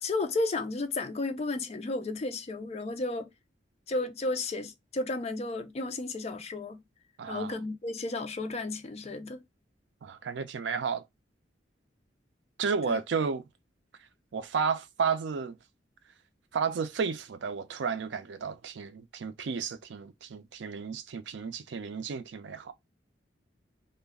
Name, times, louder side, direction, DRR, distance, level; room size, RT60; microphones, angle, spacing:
voice 1, 0.0-3.3 3.9-6.8 7.3-9.4 12.9-13.0, left 2 dB, 35° left, 0.4 m, -33 dB
voice 2, 7.2-7.5 10.0-11.0 12.6-13.4 14.3-15.6 16.5-22.7, right 5 dB, 75° right, 0.4 m, -32 dB
2.3 x 2.1 x 3.4 m
head